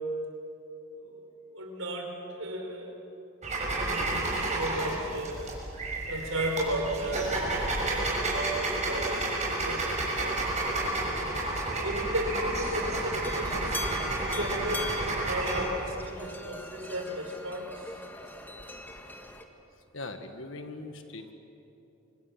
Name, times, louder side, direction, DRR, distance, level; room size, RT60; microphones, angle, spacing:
voice 1, 1.5-2.9 3.6-5.6 6.1-7.5 8.2-9.2 9.6-10.9 11.8-17.9, right 1 dB, 80° right, 3 dB, 4.6 m, -35 dB
sound 1, 3.4-15.7, right 2 dB, 35° right, 6.5 m, -31 dB
sound 2, 12.6-19.4, left 2 dB, 10° left, 1.6 m, -42 dB
voice 2, 19.9-21.3, left 2 dB, 65° left, 7 dB, 1.7 m, -40 dB
29.0 x 25.5 x 7.4 m, 3.0 s
head